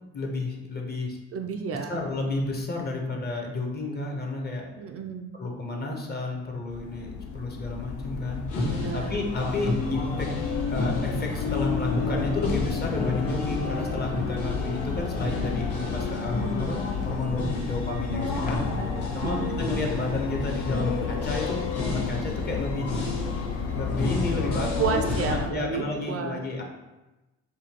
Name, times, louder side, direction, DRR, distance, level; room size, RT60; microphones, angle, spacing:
voice 1, 0.1-1.2 1.9-4.7 5.4-8.5 8.9-10.3 10.7-18.6 19.1-22.9 23.7-26.6, left 2 dB, 35° left, 0 dB, 0.8 m, -31 dB
voice 2, 1.3-2.0 4.8-5.3 8.7-9.2 19.2-19.6 24.8-26.4, right 6 dB, 50° right, 4 dB, 0.4 m, -31 dB
sound 1, 6.7-25.5, left 5 dB, 80° left, 0.5 m, -31 dB
sound 2, 8.5-25.5, left 2 dB, 50° left, 1.1 m, -32 dB
sound 3, 12.9-20.7, equal, 5° left, 0.5 m, -44 dB
4.9 x 2.2 x 2.9 m, 1.1 s
cardioid pair, 90°, 30 cm